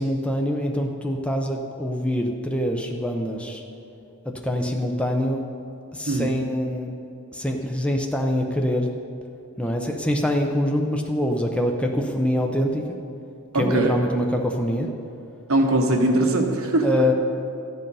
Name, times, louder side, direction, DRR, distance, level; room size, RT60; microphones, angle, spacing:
voice 1, 0.0-3.6 4.4-5.5 5.9-6.9 7.3-8.9 9.6-13.0 13.6-14.9 16.8-17.1, equal, 5° left, 2 dB, 0.6 m, -24 dB
voice 2, 13.5-14.0 15.5-16.8, right 2 dB, 75° right, 3 dB, 1.2 m, -21 dB
13.5 x 7.7 x 5.5 m, 2.7 s
head